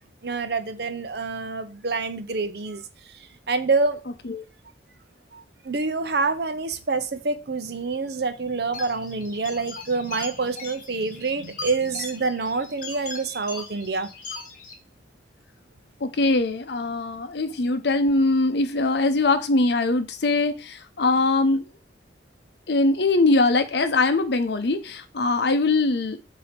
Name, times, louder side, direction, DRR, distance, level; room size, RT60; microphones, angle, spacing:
voice 1, 0.2-3.1 3.5-4.0 5.3-14.1, right 4 dB, 60° right, 0.7 m, -27 dB
sound 1, 8.7-14.7, left 3 dB, 45° left, 1.4 m, -39 dB
voice 2, 16.0-21.7 22.7-26.2, left 2 dB, 65° left, 0.7 m, -22 dB
6.9 x 2.8 x 5.1 m
head